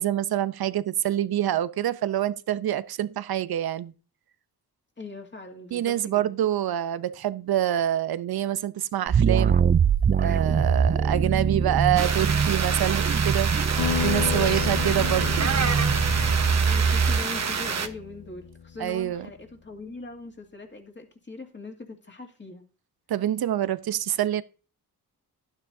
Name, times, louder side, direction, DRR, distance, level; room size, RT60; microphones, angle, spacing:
voice 1, 0.0-3.9 5.7-9.6 10.2-15.5 18.8-19.3 23.1-24.4, right 12 dB, 70° right, 0.7 m, -26 dB
voice 2, 5.0-6.3 14.3-15.1 15.6-15.7 16.6-22.6, left 2 dB, 30° left, 2.5 m, -41 dB
sound 1, 9.1-17.2, right 6 dB, 25° right, 0.4 m, -23 dB
sound 2, 12.0-17.9, right 6 dB, 45° right, 1.1 m, -28 dB
sound 3, 13.8-18.9, left 8 dB, 80° left, 1.2 m, -32 dB
11.5 x 9.7 x 2.7 m
cardioid pair, 70°, 39 cm